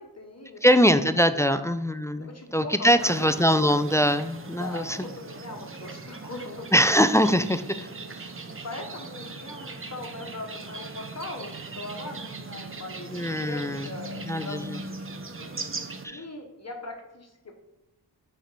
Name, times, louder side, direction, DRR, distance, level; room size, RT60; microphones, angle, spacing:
voice 1, 0.0-0.6 1.3-1.6 2.2-4.0 4.6-6.7 7.7-8.1 8.4-15.6 16.0-17.5, left 2 dB, 35° left, 2 dB, 1.3 m, -40 dB
voice 2, 0.6-5.0 6.7-7.9 13.1-13.9 14.3-14.8 16.0-16.2, equal, 10° left, 11 dB, 0.3 m, -22 dB
sound 1, 3.0-16.1, right 3 dB, 30° right, 0.7 m, -39 dB
5.8 x 4.3 x 4.1 m, 1.0 s
cardioid pair, 40°, 43 cm